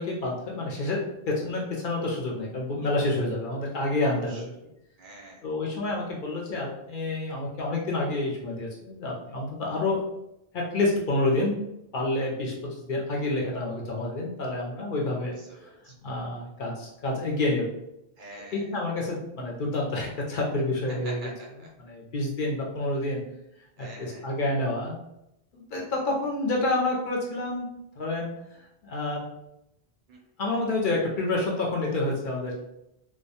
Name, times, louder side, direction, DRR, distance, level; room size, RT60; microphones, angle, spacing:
voice 1, 0.0-4.5 5.4-10.0 10.5-11.6 11.9-15.4 16.0-17.8 18.5-21.3 21.8-23.2 23.8-25.0 25.5-29.2 30.4-32.6, left 2 dB, 60° left, -2 dB, 0.6 m, -28 dB
voice 2, 4.0-4.4 5.0-5.4 15.5-15.9 18.2-18.7 21.0-21.3 21.6-21.7 23.8-24.2 30.1-30.2, right 2 dB, 60° right, -2 dB, 0.6 m, -45 dB
2.1 x 2.1 x 2.7 m, 0.84 s
omnidirectional pair, 1.0 m